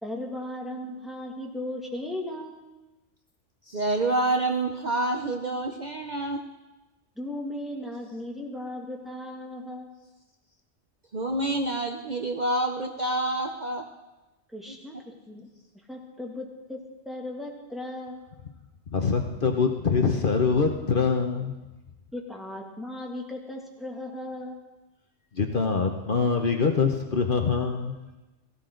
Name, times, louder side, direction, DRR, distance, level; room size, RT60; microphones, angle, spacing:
voice 1, 0.0-2.7 7.2-9.9 14.5-15.5 15.9-16.8 17.1-18.2 22.1-24.6, left 1 dB, ahead, -1 dB, 2.1 m, -36 dB
voice 2, 3.7-6.4 11.1-13.8, right 2 dB, 40° right, 3 dB, 0.9 m, -27 dB
voice 3, 18.9-21.6 25.3-28.0, left 5 dB, 50° left, 4 dB, 1.0 m, -24 dB
17.5 x 15.5 x 3.9 m, 1.1 s
omnidirectional pair, 1.2 m